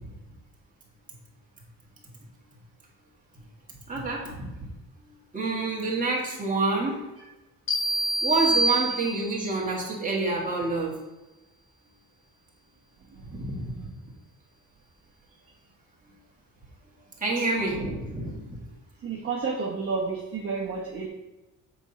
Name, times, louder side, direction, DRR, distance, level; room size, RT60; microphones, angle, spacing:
voice 1, 3.9-4.5 5.3-7.0 8.2-11.0 13.3-13.7 17.2-18.6, right 3 dB, 25° right, -3 dB, 1.8 m, -27 dB
sound 1, 7.7-9.5, right 1 dB, 85° left, 1.8 m, -26 dB
voice 2, 13.1-13.9 17.4-17.5 19.0-21.1, right 4 dB, 40° right, -4 dB, 1.0 m, -32 dB
7.9 x 4.2 x 5.1 m, 1.1 s
wide cardioid pair, 175°, 34 cm